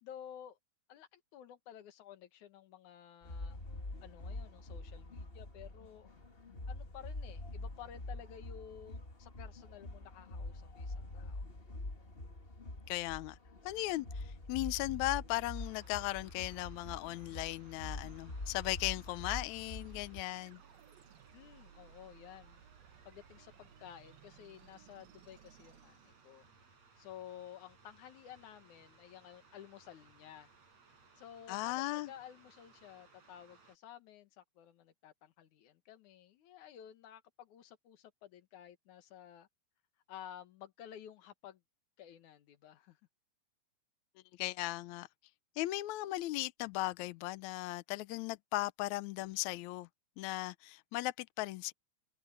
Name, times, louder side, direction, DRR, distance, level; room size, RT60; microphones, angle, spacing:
voice 1, 0.0-0.6 0.9-3.6 4.0-6.1 6.7-11.5 21.3-22.6 23.0-26.5 27.0-30.5 31.2-39.5 40.1-41.6 42.0-43.0, left 10 dB, 65° left, 2.6 m, -53 dB
sound 1, 3.2-20.2, left 2 dB, 25° left, 1.3 m, -45 dB
voice 2, 12.9-13.4 13.6-20.6 31.5-32.1 44.4-45.1 45.6-49.9 50.2-51.7, left 18 dB, 80° left, 1.6 m, -37 dB
sound 2, 15.5-33.8, right 4 dB, 45° right, 8.8 m, -64 dB
sound 3, 20.3-26.7, right 9 dB, 80° right, 3.3 m, -61 dB
open air
omnidirectional pair, 4.1 m